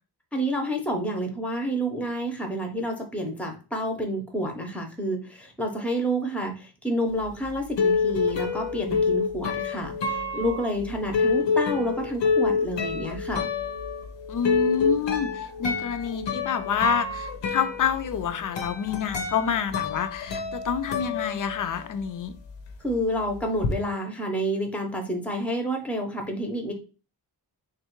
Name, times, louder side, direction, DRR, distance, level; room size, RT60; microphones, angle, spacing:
voice 1, 0.3-13.5 22.8-26.7, equal, 5° left, 3 dB, 0.6 m, -29 dB
sound 1, 7.2-22.0 22.3-23.7, left 5 dB, 90° left, 0.7 m, -28 dB
voice 2, 14.3-22.3, left 7 dB, 50° left, 10 dB, 0.5 m, -28 dB
3.4 x 2.4 x 4.4 m, 0.34 s
wide cardioid pair, 170°, 42 cm